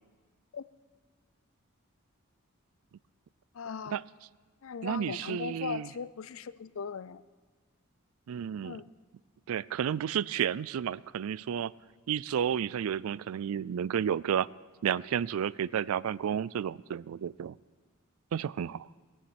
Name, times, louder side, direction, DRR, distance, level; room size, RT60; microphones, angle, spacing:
voice 1, 3.5-4.0 4.6-7.2 8.6-8.8, left 6 dB, 65° left, 16 dB, 0.5 m, -38 dB
voice 2, 4.8-5.9 8.3-8.8 9.5-11.7 12.1-14.5 14.8-17.5 18.3-18.9, right 8 dB, 75° right, 21 dB, 0.3 m, -31 dB
19.0 x 7.1 x 8.9 m, 1.4 s
head